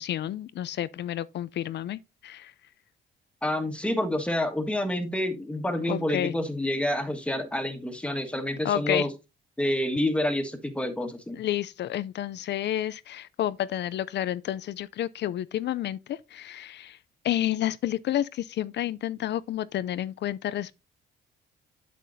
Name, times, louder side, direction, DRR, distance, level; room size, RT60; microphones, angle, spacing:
voice 1, 0.0-2.5 5.9-6.3 8.6-9.1 11.3-17.0 17.2-20.7, left 12 dB, 60° left, 0.4 m, -30 dB
voice 2, 3.4-9.1 9.6-11.4, left 1 dB, 5° left, 1.5 m, -28 dB
8.4 x 7.4 x 2.6 m
cardioid pair, 90°, 20 cm